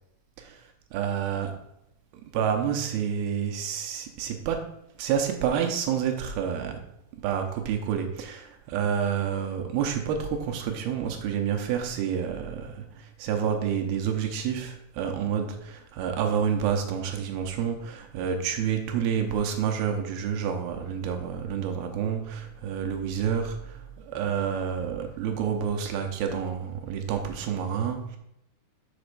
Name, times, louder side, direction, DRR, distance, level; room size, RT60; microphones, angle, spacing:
voice 1, 0.4-1.6 2.3-6.9 7.2-28.2, right 8 dB, 80° right, 4 dB, 2.7 m, -29 dB
7.0 x 4.2 x 6.7 m, 0.80 s
omnidirectional pair, 4.5 m